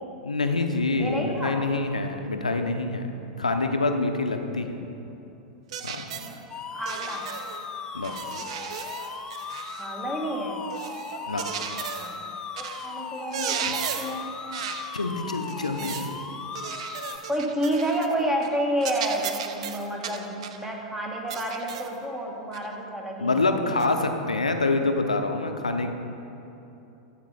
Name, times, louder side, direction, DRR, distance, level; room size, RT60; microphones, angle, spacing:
voice 1, 0.2-3.1 3.4-4.8 5.8-6.1 7.9-8.1 11.3-11.4 13.7-13.8 14.9-16.0 23.2-25.9, left 3 dB, 85° left, 6 dB, 0.6 m, -26 dB
voice 2, 1.0-1.6 6.2-6.4 6.7-7.3 9.0-9.1 9.8-10.7 12.0-12.2 12.5-14.3 15.8-15.9 17.3-23.7, equal, 10° right, 0 dB, 1.4 m, -30 dB
sound 1, 5.7-6.4 6.8-7.6 8.0-9.9 10.7-12.2 12.6-12.9 13.2-14.2 14.5-14.9 15.5-16.1 16.5-18.1 18.4-18.6 18.8-20.6 21.3-22.0 22.5-22.7 23.8-23.9, right 8 dB, 60° right, 0.6 m, -35 dB
sound 2, 6.5-17.2, left 5 dB, 20° left, 0.6 m, -37 dB
8.3 x 7.4 x 4.9 m, 3.0 s
figure-of-eight pair, 95°, 4 cm